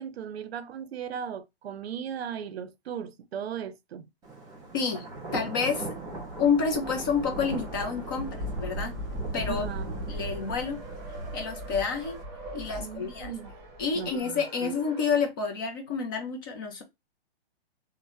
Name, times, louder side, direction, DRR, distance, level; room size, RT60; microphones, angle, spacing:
voice 1, 0.0-4.1 9.5-10.1 12.8-13.5 13.9-14.7, right 8 dB, 85° right, 0.6 m, -37 dB
Thunder, 4.2-14.1, right 1 dB, 15° right, 1.1 m, -37 dB
voice 2, 4.7-5.1 5.3-5.9 6.4-9.0 9.3-9.6 10.1-10.8 11.3-12.2 12.5-13.3 13.8-16.8, left 5 dB, 25° left, 0.4 m, -29 dB
Race car auto racing, 6.0-15.3, right 3 dB, 30° right, 0.7 m, -47 dB
3.1 x 2.1 x 2.6 m
hypercardioid pair, 150°, 30 cm